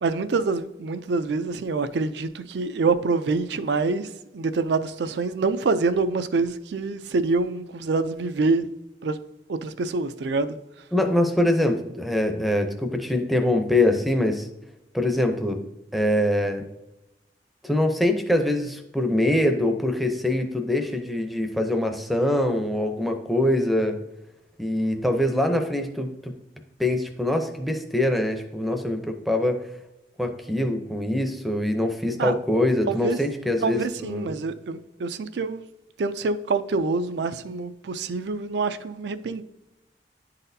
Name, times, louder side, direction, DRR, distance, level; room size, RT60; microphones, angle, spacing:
voice 1, 0.0-8.6 9.0-9.2 9.5-10.6 32.2-32.3 32.9-33.2 33.6-35.6 36.0-39.4, right 3 dB, 75° right, 0.4 m, -26 dB
voice 2, 10.9-14.5 14.9-15.6 15.9-16.7 17.6-24.0 24.6-26.3 26.8-29.6 30.2-34.4, left 1 dB, ahead, 0.5 m, -24 dB
10.5 x 4.1 x 2.7 m
head